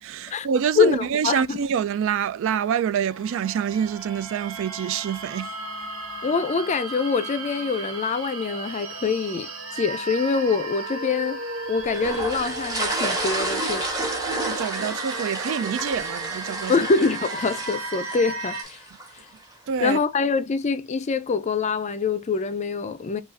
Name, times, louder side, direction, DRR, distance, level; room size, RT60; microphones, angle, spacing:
voice 1, 0.0-5.5 14.5-16.7 19.7-20.0, right 8 dB, 65° right, 0.3 m, -26 dB
voice 2, 0.8-1.6 6.2-9.5 9.7-11.4 11.7-14.1 16.7-18.8 19.8-23.2, left 5 dB, 35° left, 0.4 m, -24 dB
sound 1, 3.1-18.6, right 2 dB, 90° right, 1.0 m, -35 dB
sound 2, 11.9-19.2, right 2 dB, 15° right, 1.1 m, -30 dB
5.1 x 2.4 x 2.4 m
head